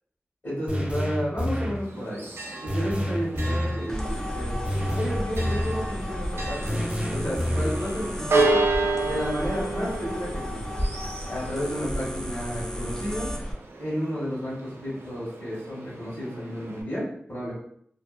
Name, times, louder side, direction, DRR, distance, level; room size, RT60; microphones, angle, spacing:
voice 1, 0.4-2.2 2.6-6.8 7.1-8.7 9.0-10.6 11.3-13.3 13.8-17.5, equal, 65° left, -9 dB, 1.3 m, -32 dB
sound 1, 0.7-1.9 2.7-3.8 4.6-5.9 6.7-7.9, equal, 35° right, 0.6 m, -28 dB
Church bell, 1.8-16.8, right 2 dB, 75° right, 0.4 m, -32 dB
sound 2, 3.9-13.5, equal, 15° left, 0.4 m, -33 dB
2.6 x 2.2 x 2.4 m, 0.66 s
wide cardioid pair, 85°, 4 cm